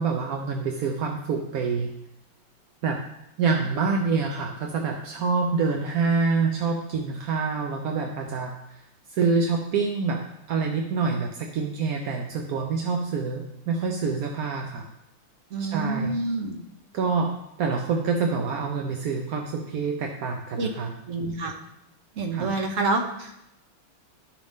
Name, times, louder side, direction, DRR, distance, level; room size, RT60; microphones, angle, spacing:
voice 1, 0.0-1.9 2.8-3.0 3.4-8.5 9.1-10.2 10.5-14.9 15.6-16.2 16.9-20.9 22.3-22.5, right 4 dB, 65° right, 2 dB, 0.9 m, -26 dB
voice 2, 15.5-16.6 20.6-20.7 21.1-21.5 22.2-23.4, right 3 dB, 50° right, 3 dB, 1.1 m, -27 dB
12.0 x 5.1 x 3.6 m, 0.85 s
omnidirectional pair, 2.2 m